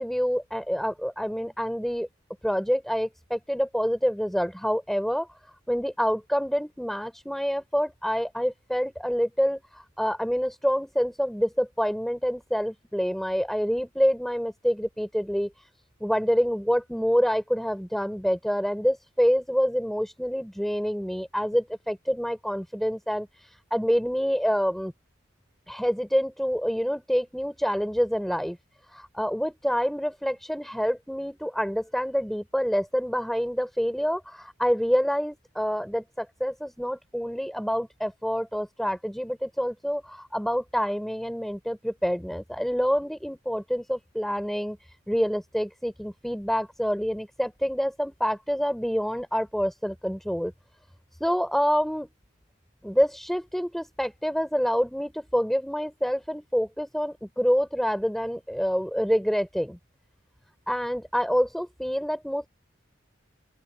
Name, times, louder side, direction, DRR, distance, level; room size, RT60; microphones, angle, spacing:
voice 1, 0.0-2.1 2.4-5.3 5.7-9.6 10.0-15.5 16.0-23.3 23.7-24.9 25.7-28.6 28.9-44.8 45.1-50.5 51.2-52.1 52.8-59.8 60.7-62.5, equal, ahead, 4.0 m, -27 dB
open air
head